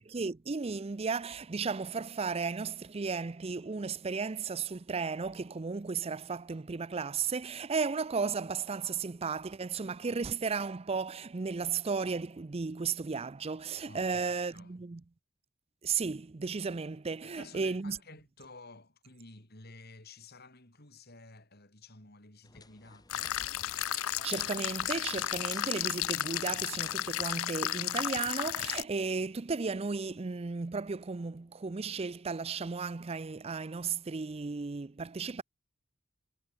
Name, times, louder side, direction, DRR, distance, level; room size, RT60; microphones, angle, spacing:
voice 1, 0.0-15.0 15.8-18.0 23.9-35.4, right 5 dB, 30° right, 0.5 m, -34 dB
voice 2, 13.9-14.7 17.2-23.4, left 3 dB, 50° left, 6.2 m, -53 dB
sound 1, 22.4-27.4, left 3 dB, 20° left, 3.1 m, -54 dB
sound 2, 23.1-28.8, left 13 dB, 90° left, 0.5 m, -33 dB
head